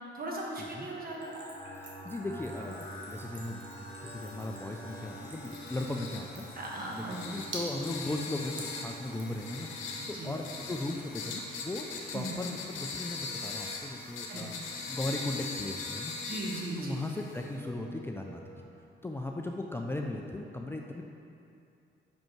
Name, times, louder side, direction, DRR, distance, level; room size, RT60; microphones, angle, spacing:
voice 1, 0.1-1.3 6.6-7.2 10.0-10.3 12.1-12.3 14.3-14.4 16.3-17.0, right 2 dB, 45° right, -2 dB, 1.4 m, -38 dB
sound 1, 0.7-20.4, right 1 dB, 30° left, 1.3 m, -50 dB
Splash splatter / Trickle dribble, 1.1-9.4, right 2 dB, 70° right, 1.3 m, -47 dB
voice 2, 1.7-6.5 6.9-16.1 16.8-18.4 19.0-21.0, left 2 dB, 10° left, 1 dB, 0.4 m, -37 dB
sound 2, 2.7-17.6, left 4 dB, 85° left, 0.9 m, -42 dB
5.7 x 5.2 x 4.5 m, 2.6 s
cardioid pair, 90°, 20 cm